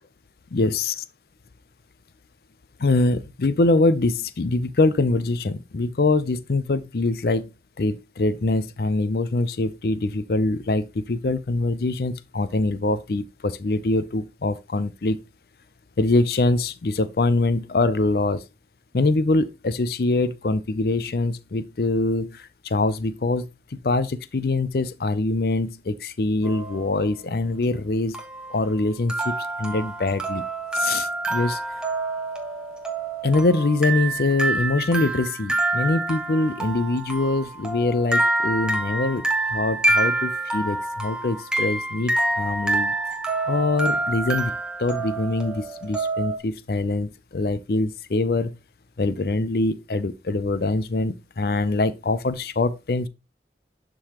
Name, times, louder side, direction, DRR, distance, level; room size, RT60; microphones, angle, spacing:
voice 1, 0.5-1.0 2.8-7.5 7.8-15.2 16.0-18.4 18.9-28.2 28.5-30.4 30.7-31.6 33.2-39.2 39.5-42.9 43.5-44.5 44.8-48.5 49.0-53.1, left 2 dB, 55° left, 0.5 m, -24 dB
sound 1, 26.4-26.9 28.1-46.4, right 2 dB, 5° right, 1.1 m, -27 dB
11.5 x 3.8 x 2.9 m
head